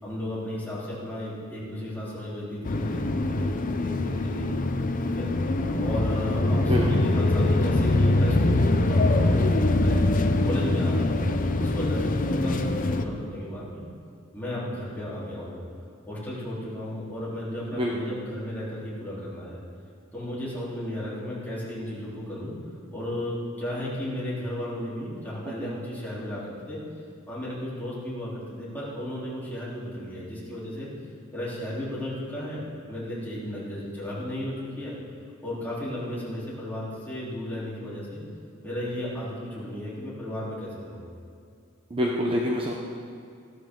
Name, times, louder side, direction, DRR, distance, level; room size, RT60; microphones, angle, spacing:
voice 1, 0.0-4.5 5.0-5.3 5.8-10.0 10.4-13.8 14.3-15.6 16.1-19.6 20.1-22.5 22.9-26.8 27.3-30.9 31.3-32.6 32.9-34.9 35.4-38.2 38.6-41.1, left 1 dB, 10° left, -9 dB, 3.6 m, -34 dB
sound 1, 2.6-13.1, left 2 dB, 40° left, 0.6 m, -23 dB
voice 2, 41.9-42.7, equal, 25° right, -1 dB, 0.9 m, -26 dB
15.0 x 12.5 x 3.8 m, 2.3 s
head